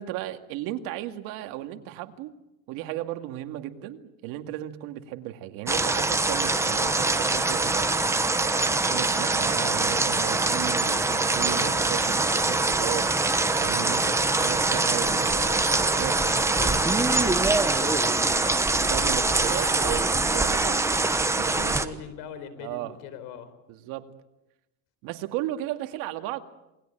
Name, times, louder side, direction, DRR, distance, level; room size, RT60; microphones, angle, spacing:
voice 1, 0.0-2.3 2.7-7.9 8.4-13.1 13.6-16.8 18.9-20.8 21.4-22.0 22.6-23.0 23.7-24.2 25.0-26.4, right 13 dB, 65° right, 7 dB, 2.2 m, -35 dB
sound 1, 5.7-21.9, right 3 dB, 10° right, 1.1 m, -24 dB
voice 2, 16.2-18.7 21.5-23.5, left 7 dB, 70° left, 12 dB, 4.4 m, -41 dB
27.5 x 20.5 x 9.1 m, 0.90 s
cardioid pair, 145°, 36 cm